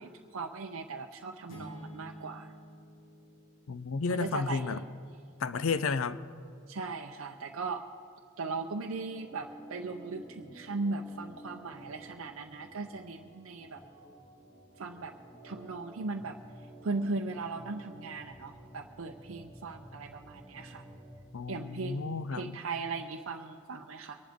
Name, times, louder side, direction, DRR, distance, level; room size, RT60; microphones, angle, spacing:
voice 1, 0.0-2.5 4.1-4.8 6.7-7.8 8.4-13.8 14.8-15.1 15.4-16.4 16.8-20.8 21.5-24.2, right 3 dB, 80° right, 0.6 m, -38 dB
sound 1, 1.5-4.3, equal, 60° left, 2.1 m, -49 dB
voice 2, 3.7-4.8 5.4-6.2 21.3-22.6, left 4 dB, 80° left, 0.5 m, -32 dB
Organ, 9.1-21.2, equal, 40° left, 3.0 m, -52 dB
23.5 x 11.5 x 3.6 m
head